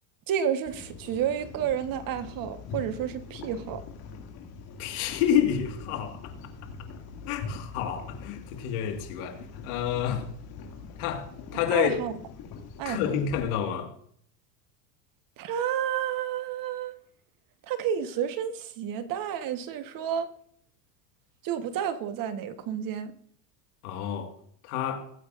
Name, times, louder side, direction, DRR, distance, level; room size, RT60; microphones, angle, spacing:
voice 1, 0.3-3.8 11.7-12.1 12.8-13.2 15.4-16.9 17.7-20.3 21.4-23.1, right 9 dB, 45° right, 1.3 m, -30 dB
sound 1, 0.6-13.4, left 4 dB, 50° left, 2.4 m, -43 dB
voice 2, 4.8-6.2 7.3-10.2 11.0-11.3 11.5-11.9 12.9-13.9 23.8-24.3 24.7-25.0, left 9 dB, 70° left, 1.9 m, -28 dB
17.0 x 8.3 x 2.5 m
supercardioid pair, 100°, 46 cm